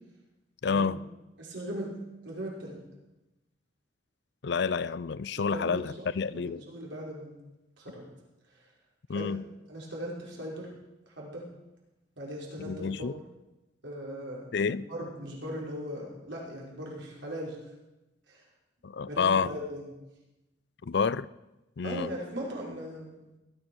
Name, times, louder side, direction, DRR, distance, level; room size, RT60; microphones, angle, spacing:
voice 1, 0.6-1.0 4.4-6.6 9.1-9.4 12.6-13.1 14.5-14.9 18.8-19.5 20.8-21.3 21.8-22.1, left 5 dB, 60° left, 18 dB, 0.5 m, -29 dB
voice 2, 1.4-2.8 5.4-5.8 6.3-7.4 7.8-8.0 9.1-9.3 9.7-10.7 11.2-11.5 12.2-13.3 13.8-17.6 18.3-18.4 19.1-19.9 21.8-23.2, equal, 70° right, -4 dB, 5.5 m, -38 dB
19.0 x 11.5 x 6.3 m, 0.99 s
head